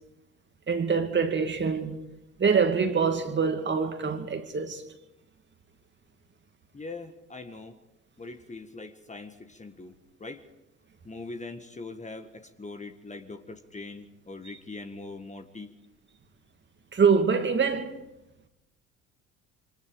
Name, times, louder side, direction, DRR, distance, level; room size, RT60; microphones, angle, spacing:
voice 1, 0.7-2.0 2.4-4.8 16.9-17.9, right 5 dB, 30° right, 2.5 m, -25 dB
voice 2, 6.7-7.8 8.2-9.9 10.2-10.4 11.0-15.7, left 3 dB, 20° left, 1.7 m, -42 dB
27.5 x 24.5 x 5.1 m
hypercardioid pair, 65°, 38 cm